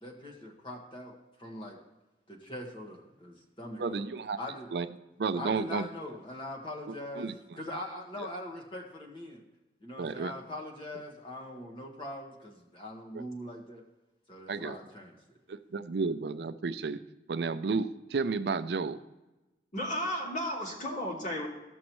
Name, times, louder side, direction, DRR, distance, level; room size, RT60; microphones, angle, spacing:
voice 1, 0.0-1.8 2.3-4.0 4.4-4.7 5.3-7.3 7.6-9.4 9.8-13.8 14.3-15.4, left 1 dB, 30° left, 0 dB, 1.4 m, -42 dB
voice 2, 3.8-4.4 4.7-4.9 5.2-5.9 7.2-7.3 10.0-10.3 13.1-13.2 14.5-14.8 15.5-17.0 17.3-19.0, right 4 dB, 70° right, 11 dB, 0.5 m, -32 dB
voice 3, 19.7-21.5, equal, 45° left, -2 dB, 2.0 m, -33 dB
14.5 x 6.3 x 3.0 m, 1.0 s
head